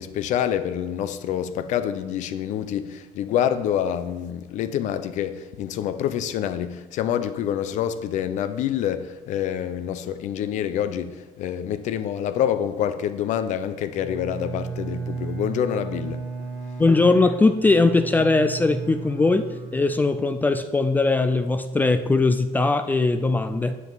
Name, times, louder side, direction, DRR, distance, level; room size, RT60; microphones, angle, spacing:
voice 1, 0.0-16.2, left 10 dB, 55° left, 0.7 m, -27 dB
Bowed string instrument, 13.9-20.5, right 5 dB, 55° right, 1.7 m, -35 dB
voice 2, 16.8-19.5 19.7-23.8, left 3 dB, 10° left, 0.3 m, -20 dB
10.0 x 7.6 x 4.0 m
cardioid pair, 160°, 15 cm